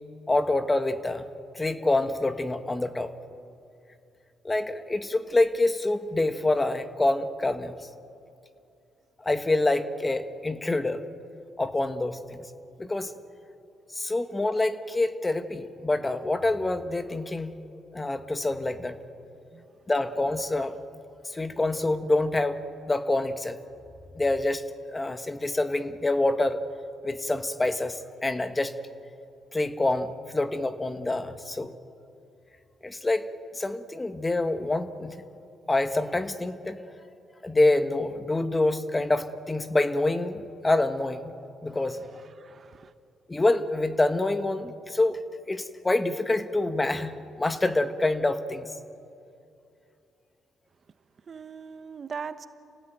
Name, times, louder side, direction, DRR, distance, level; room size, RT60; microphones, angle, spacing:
voice 1, 0.3-1.2 1.5-3.1 4.4-7.8 9.2-11.0 11.6-12.5 12.8-13.1 14.0-17.5 17.9-19.0 19.9-20.7 21.3-22.6 22.9-23.6 24.2-24.6 24.9-26.6 27.0-28.7 29.5-31.7 32.8-35.1 35.7-36.8 37.4-41.3 41.6-42.1 43.3-45.2 45.5-48.6, left 2 dB, 20° left, 10 dB, 1.4 m, -26 dB
voice 2, 42.4-42.9 51.3-52.5, right 6 dB, 45° right, 11 dB, 1.1 m, -39 dB
28.0 x 17.5 x 9.2 m, 2.6 s
cardioid pair, 90°, 0 cm